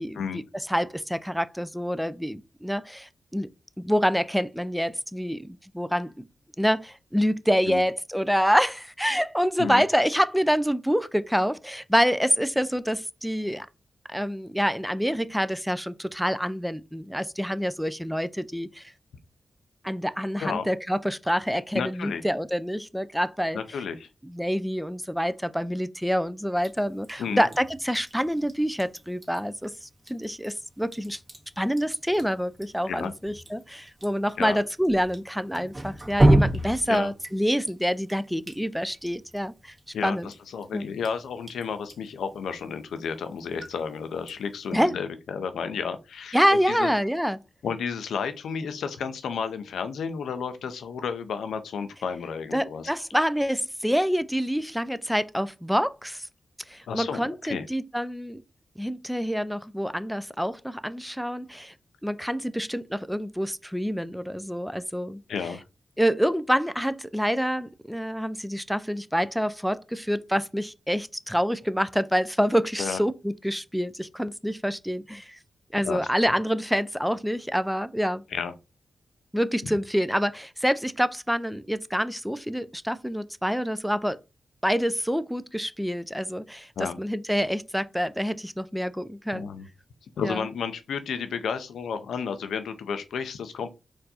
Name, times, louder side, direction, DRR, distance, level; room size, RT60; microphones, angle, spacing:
voice 1, 0.0-3.5 3.8-6.3 6.6-13.7 14.1-18.9 19.8-23.6 24.2-31.2 31.6-39.7 40.0-40.3 40.7-40.9 44.7-45.0 46.3-47.4 52.5-56.3 56.7-58.4 58.8-61.7 62.0-65.2 66.0-75.4 75.7-78.2 79.3-84.2 84.6-86.7 87.0-89.5 90.2-90.5, equal, ahead, 0.4 m, -27 dB
voice 2, 21.7-22.2 23.5-24.1 27.2-27.5 32.9-33.1 34.4-34.6 36.9-37.1 39.9-46.9 47.6-52.9 56.9-57.7 65.3-65.6 72.8-73.0 75.8-76.0 78.3-78.5 86.8-87.0 89.3-89.7 90.2-93.7, left 6 dB, 85° left, 0.5 m, -32 dB
Drip, 26.6-44.9, right 1 dB, 35° right, 1.6 m, -32 dB
4.5 x 2.6 x 4.1 m
supercardioid pair, 45°, 0 cm